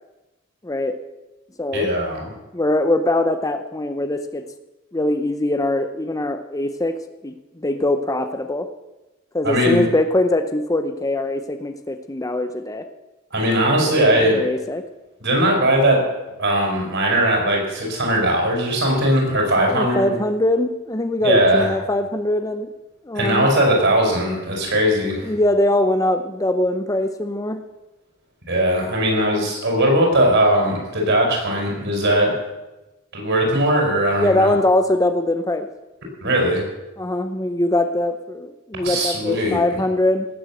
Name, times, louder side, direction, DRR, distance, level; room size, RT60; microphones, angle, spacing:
voice 1, 0.6-0.9 1.6-1.9 2.5-4.5 4.9-7.0 7.2-8.7 9.3-12.9 13.8-14.0 14.3-14.8 19.6-22.7 23.1-23.5 25.2-27.6 34.2-35.7 37.0-40.3, left 1 dB, 15° left, 8 dB, 0.7 m, -22 dB
voice 2, 1.7-2.3 9.4-9.8 13.3-14.4 15.2-16.0 16.4-20.2 21.2-21.7 23.1-25.3 28.5-32.3 33.1-34.5 36.2-36.6 38.8-39.6, right 1 dB, 55° right, 0 dB, 6.2 m, -19 dB
18.5 x 8.1 x 7.8 m, 1.0 s
head